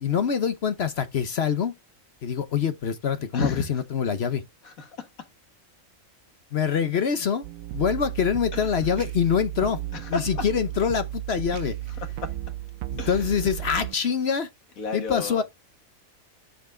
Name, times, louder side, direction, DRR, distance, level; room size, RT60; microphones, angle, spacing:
voice 1, 0.0-1.7 2.2-4.4 6.5-7.4 7.7-9.8 10.1-11.8 12.9-14.5 14.9-15.4, left 7 dB, 55° left, 1.0 m, -25 dB
voice 2, 3.3-3.8 4.6-5.3 8.5-8.8 9.9-10.4 12.0-12.3 13.0-13.3 14.8-15.4, left 4 dB, 80° left, 2.0 m, -33 dB
sound 1, 7.4-14.0, right 15 dB, 80° right, 1.0 m, -34 dB
7.2 x 5.1 x 3.7 m
omnidirectional pair, 1.4 m